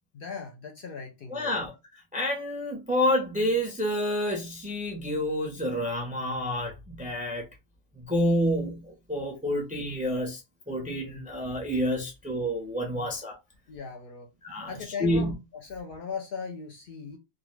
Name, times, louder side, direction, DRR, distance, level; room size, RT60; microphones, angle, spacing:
voice 1, 0.1-1.6 12.9-13.2 13.7-14.3 14.7-17.2, left 5 dB, 60° left, 0.7 m, -39 dB
voice 2, 1.3-1.7 2.1-7.5 8.0-10.4 10.7-13.4 14.4-15.3, equal, 10° right, 0.4 m, -28 dB
2.3 x 2.1 x 3.1 m
omnidirectional pair, 1.2 m